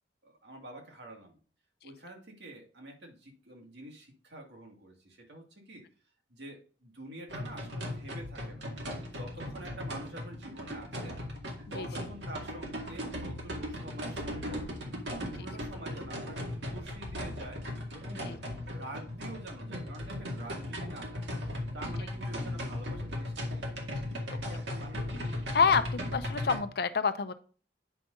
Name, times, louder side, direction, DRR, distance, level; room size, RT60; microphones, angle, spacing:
voice 1, 0.2-1.4 1.8-5.8 6.3-11.2 11.7-14.7 15.3-18.3 18.7-21.4 21.7-23.7 24.3-25.1, right 1 dB, 70° right, 1 dB, 2.1 m, -47 dB
sound 1, 7.3-26.6, left 1 dB, 85° right, 2.1 m, -37 dB
voice 2, 25.5-27.3, left 5 dB, 65° left, 11 dB, 0.7 m, -27 dB
9.2 x 5.4 x 3.8 m, 0.40 s
head